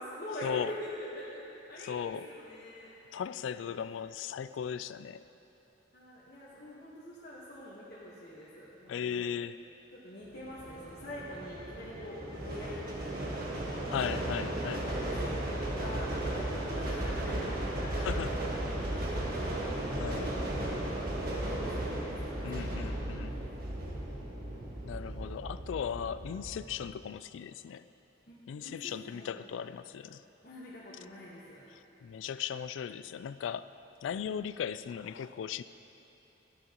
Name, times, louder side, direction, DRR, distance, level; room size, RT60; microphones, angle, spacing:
voice 1, 0.0-3.6 5.9-9.4 9.9-13.8 14.8-19.5 20.5-22.6 28.3-29.5 30.4-31.7, left 1 dB, 50° left, -9 dB, 1.3 m, -45 dB
voice 2, 1.9-2.3 3.1-5.3 8.9-9.6 13.9-14.9 18.0-18.4 19.9-20.3 22.4-23.4 24.8-27.8 28.5-30.2 32.0-33.7 34.0-35.6, left 8 dB, 85° left, 14 dB, 0.3 m, -37 dB
sound 1, 10.4-26.9, right 1 dB, 55° right, 1.3 m, -35 dB
13.5 x 10.5 x 2.9 m, 3.0 s
head